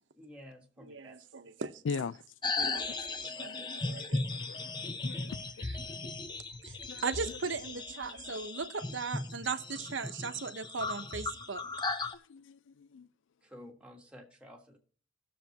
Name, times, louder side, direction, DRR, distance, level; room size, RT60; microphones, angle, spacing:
voice 1, 0.1-1.5 2.7-3.7 5.1-5.3 13.4-14.8, equal, 5° right, 1.5 m, -53 dB
voice 2, 0.9-1.7 2.6-2.8 3.4-4.2 5.6-5.8 6.0-6.1 6.6-6.8 7.0-11.6, right 5 dB, 70° right, 0.9 m, -38 dB
sound 1, 2.4-12.1, left 3 dB, 25° left, 0.5 m, -37 dB
voice 3, 4.3-4.8 5.0-5.4 6.9-7.0 12.3-13.1, left 5 dB, 75° left, 0.4 m, -39 dB
17.5 x 6.9 x 2.9 m
head